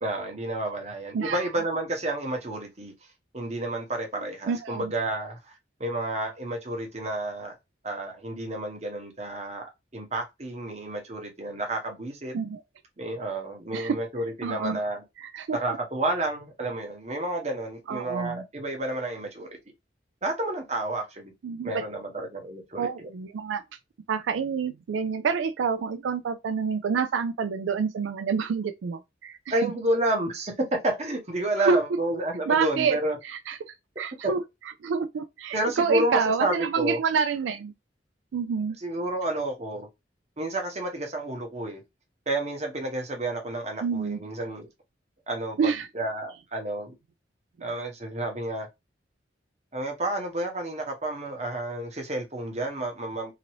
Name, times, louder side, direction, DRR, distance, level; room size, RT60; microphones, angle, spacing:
voice 1, 0.0-2.9 3.3-5.4 5.8-7.6 7.8-12.3 13.0-15.0 15.5-19.5 20.2-21.3 21.6-23.1 29.5-33.2 34.2-34.3 35.5-37.0 38.8-39.9 40.4-41.8 42.3-44.7 45.3-47.0 47.6-48.7 49.7-53.3, right 1 dB, 35° right, 0.9 m, -30 dB
voice 2, 1.1-1.5 4.2-4.9 12.3-12.6 13.7-14.0 14.4-14.8 15.2-15.6 17.9-18.4 21.4-21.8 22.8-23.6 24.1-29.7 31.6-31.8 32.5-33.0 33.2-33.6 34.0-34.4 34.8-37.7 38.3-38.8 43.8-44.2 45.6-45.9, right 5 dB, 90° right, 0.4 m, -28 dB
2.9 x 2.5 x 3.0 m
head